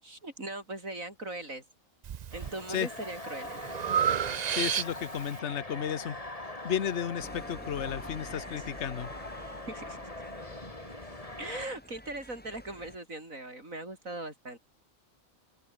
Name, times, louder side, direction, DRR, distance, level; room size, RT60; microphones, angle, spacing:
voice 1, 0.0-1.6 2.3-3.6 9.7-10.0 11.4-14.6, right 2 dB, 80° right, 7.4 m, -39 dB
Breathing, 2.0-2.5 3.0-5.3, right 8 dB, 60° right, 0.4 m, -30 dB
sound 1, 2.3-11.7, left 2 dB, 25° left, 3.2 m, -42 dB
voice 2, 4.5-6.2 6.6-9.1, left 9 dB, 60° left, 1.3 m, -33 dB
sound 2, 7.2-13.0, equal, 5° left, 3.1 m, -49 dB
open air
omnidirectional pair, 1.4 m